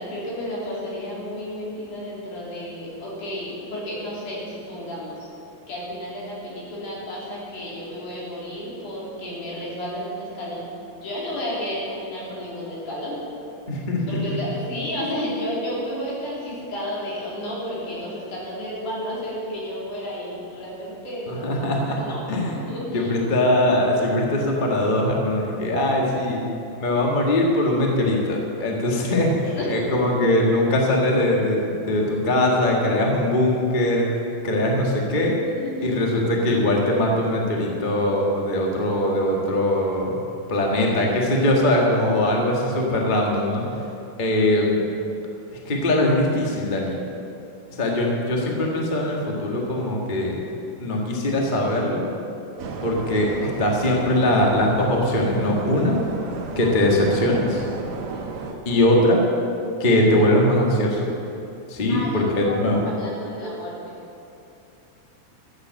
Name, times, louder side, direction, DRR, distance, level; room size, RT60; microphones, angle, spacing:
voice 1, 0.0-5.3 5.7-10.7 11.0-13.2 14.1-21.6 22.0-22.2 22.5-23.1 25.6-26.3 29.4-29.7 35.2-35.9 42.3-42.8 61.9-63.9, equal, 65° left, -6 dB, 4.6 m, -32 dB
voice 2, 13.7-14.4 21.3-22.6 22.9-26.4 26.8-34.0 34.4-35.3 35.8-40.2 40.5-43.8 44.2-44.8 45.6-46.9 47.8-50.4 50.8-52.1 52.8-56.0 56.5-57.6 58.6-59.2 59.8-61.1 61.7-62.8, left 1 dB, 35° left, -1 dB, 0.7 m, -21 dB
sound 1, 52.6-58.5, right 4 dB, 65° right, 1.6 m, -33 dB
13.5 x 8.2 x 7.6 m, 2.7 s
omnidirectional pair, 3.9 m